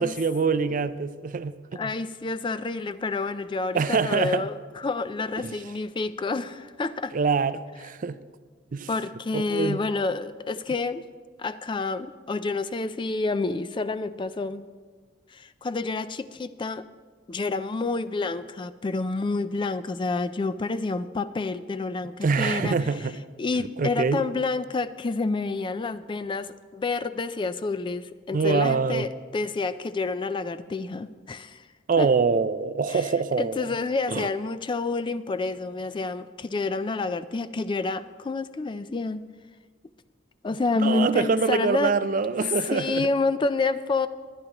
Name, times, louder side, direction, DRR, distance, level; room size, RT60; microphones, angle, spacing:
voice 1, 0.0-1.9 3.7-4.5 5.4-5.5 7.1-8.2 8.7-8.9 9.3-9.8 22.2-23.1 23.8-24.3 28.3-29.1 31.9-33.7 34.1-34.3 40.8-43.1, right 5 dB, 45° right, 0.4 m, -25 dB
voice 2, 1.7-7.1 8.9-11.0 11.4-14.6 15.3-16.8 17.3-22.9 23.4-31.7 32.0-32.1 32.9-33.1 33.4-39.2 40.4-41.9 42.3-42.4 42.7-44.1, left 3 dB, 25° left, 0.3 m, -29 dB
22.5 x 9.9 x 3.0 m
head